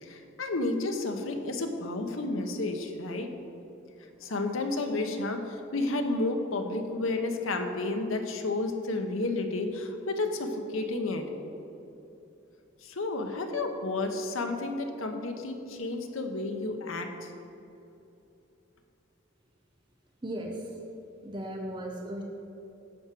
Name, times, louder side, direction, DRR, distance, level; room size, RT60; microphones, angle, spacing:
voice 1, 0.0-3.3 4.2-11.3 12.8-17.3, left 2 dB, 85° left, 4 dB, 1.0 m, -31 dB
voice 2, 20.2-20.8 21.2-22.2, right 1 dB, 25° right, 0 dB, 0.7 m, -36 dB
10.5 x 4.6 x 7.6 m, 2.8 s
head